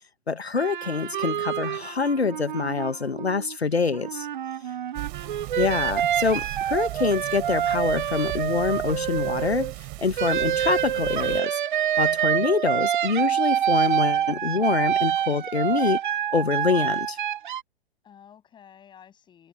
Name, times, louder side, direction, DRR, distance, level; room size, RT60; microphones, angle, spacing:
voice 1, 0.3-4.3 5.6-9.7 10.0-11.6 12.0-16.0 16.3-17.2, left 4 dB, 80° left, 1.0 m, -25 dB
sound 1, 0.6-3.5 3.9-9.7 10.2-17.6, right 10 dB, 50° right, 0.5 m, -26 dB
sound 2, 4.9-11.4, right 38 dB, 30° right, 6.6 m, -38 dB
voice 2, 5.1-5.6 18.0-19.5, left 8 dB, 15° left, 7.2 m, -52 dB
figure-of-eight pair, 120°, 31 cm